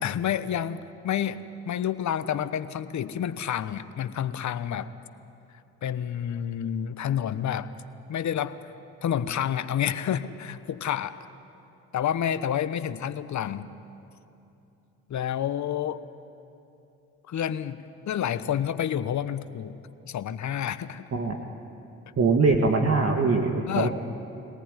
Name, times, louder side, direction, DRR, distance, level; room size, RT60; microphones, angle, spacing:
voice 1, 0.0-4.9 5.8-7.7 8.1-8.5 9.0-11.2 11.9-13.7 15.1-16.0 17.3-17.8 18.1-19.7 20.0-21.1 23.7-23.9, left 9 dB, 55° left, 12 dB, 1.1 m, -29 dB
voice 2, 22.2-23.9, right 3 dB, 40° right, 1 dB, 2.1 m, -22 dB
23.5 x 18.5 x 10.0 m, 2.8 s
hypercardioid pair, 55°, 35 cm